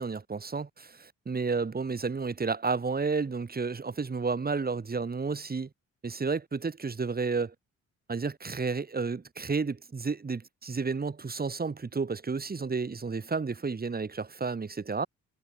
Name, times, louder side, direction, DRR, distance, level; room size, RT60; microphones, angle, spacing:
voice 1, 0.0-5.7 6.0-7.5 8.1-15.1, right 4 dB, 30° right, 6.6 m, -31 dB
cardioid pair, 90°, 30 cm